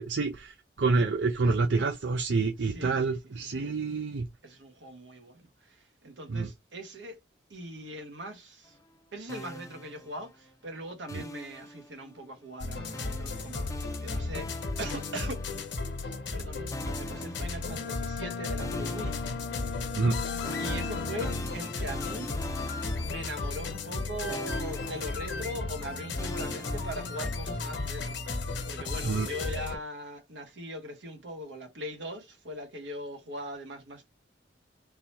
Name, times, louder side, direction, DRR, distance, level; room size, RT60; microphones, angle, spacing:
voice 1, 0.0-4.3 6.3-6.5 19.9-20.2 29.0-29.3, right 4 dB, 70° right, 0.5 m, -27 dB
voice 2, 2.6-3.8 4.4-7.2 7.5-8.8 9.1-14.5 14.8-15.4 16.3-19.2 20.6-22.4 23.0-34.1, equal, 90° right, 1.2 m, -41 dB
sound 1, 9.3-10.5 11.1-12.3 12.9-16.0 16.7-18.2 18.6-24.0 24.3-27.6, left 1 dB, 20° left, 0.5 m, -42 dB
sound 2, 12.6-29.8, left 3 dB, 75° left, 1.1 m, -35 dB
Bowed string instrument, 17.6-21.7, left 7 dB, 55° left, 0.7 m, -39 dB
3.9 x 2.8 x 2.9 m
head